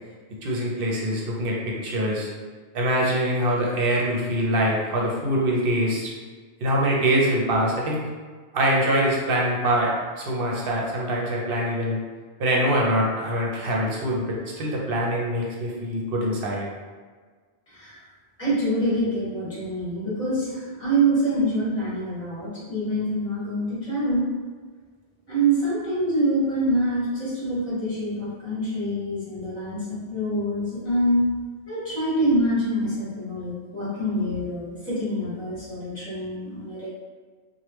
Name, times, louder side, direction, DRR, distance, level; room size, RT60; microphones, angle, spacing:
voice 1, 0.4-2.3 2.7-6.1 6.6-8.0 8.5-9.9 10.2-12.0 12.4-16.7, equal, 60° right, -3 dB, 0.8 m, -24 dB
voice 2, 17.7-18.0 18.4-24.3 25.3-31.2 31.7-36.9, right 1 dB, 30° left, -10 dB, 1.4 m, -25 dB
3.2 x 2.2 x 3.0 m, 1.5 s
omnidirectional pair, 1.1 m